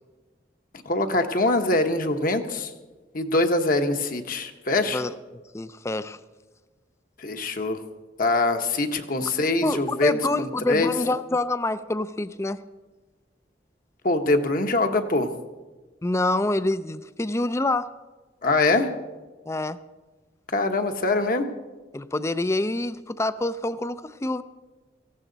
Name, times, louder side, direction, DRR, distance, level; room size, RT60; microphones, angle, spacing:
voice 1, 0.8-2.7 3.1-5.0 7.2-7.8 8.2-10.9 14.0-15.3 18.4-18.9 20.5-21.4, left 2 dB, 50° left, 6 dB, 1.1 m, -23 dB
voice 2, 4.9-6.2 9.6-12.6 16.0-17.9 19.5-19.8 21.9-24.4, left 2 dB, 15° left, 14 dB, 0.4 m, -26 dB
18.0 x 15.5 x 4.0 m, 1.2 s
head